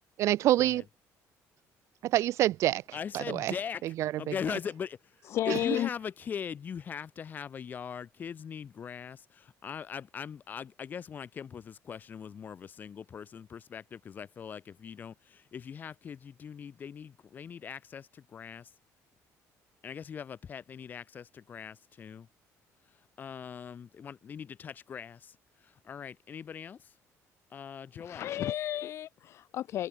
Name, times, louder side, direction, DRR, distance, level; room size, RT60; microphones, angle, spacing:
voice 1, 0.2-0.8 2.0-3.5 3.8-4.3 5.5-5.6, right 14 dB, 55° right, 0.4 m, -27 dB
voice 2, 2.9-3.8 4.2-5.0 5.4-18.7 19.8-22.3 23.2-25.4 25.6-26.9 27.5-28.3, left 7 dB, 30° left, 1.5 m, -40 dB
voice 3, 5.3-5.9 28.0-29.9, left 12 dB, 45° left, 0.5 m, -32 dB
cardioid pair, 170°, 6 cm